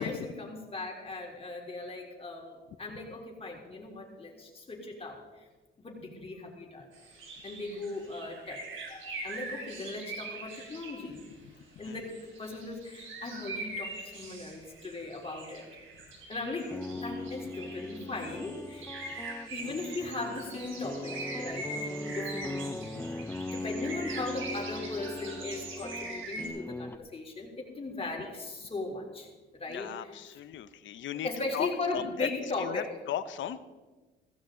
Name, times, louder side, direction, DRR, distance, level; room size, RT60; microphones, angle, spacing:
voice 1, 0.0-5.4 5.8-6.9 7.4-8.6 8.9-11.2 11.8-15.7 16.3-18.9 19.5-29.3 29.5-29.9 31.2-32.9, left 2 dB, 30° left, 0 dB, 3.6 m, -38 dB
sound 1, 6.9-11.3 11.8-26.5, right 2 dB, 80° right, 3.6 m, -43 dB
sound 2, 16.5-27.0, left 2 dB, 10° left, 0.6 m, -39 dB
voice 2, 28.0-28.3 29.7-33.6, left 10 dB, 75° left, 12 dB, 0.9 m, -37 dB
15.5 x 15.0 x 3.9 m, 1.2 s
cardioid pair, 90°, 20 cm